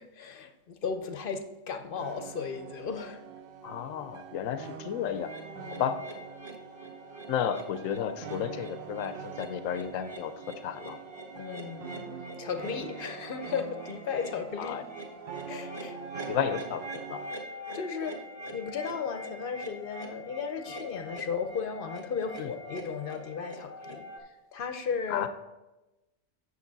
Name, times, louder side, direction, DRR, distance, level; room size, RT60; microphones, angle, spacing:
voice 1, 0.0-3.2 5.6-5.8 8.0-8.2 11.3-12.1 12.4-14.8 15.5-16.0 17.7-18.2 18.5-24.1 24.5-25.3, left 6 dB, 50° left, 8 dB, 0.8 m, -35 dB
sound 1, 2.0-17.4, right 7 dB, 60° right, 0.6 m, -45 dB
voice 2, 3.6-5.3 5.8-6.0 7.3-10.3 10.6-11.0 14.6-14.8 16.3-17.2 22.4-22.5 25.1-25.3, left 8 dB, 90° left, 10 dB, 1.0 m, -32 dB
sound 2, 5.2-24.2, equal, 20° right, 1.4 m, -44 dB
8.6 x 6.6 x 4.0 m, 1.0 s
omnidirectional pair, 1.3 m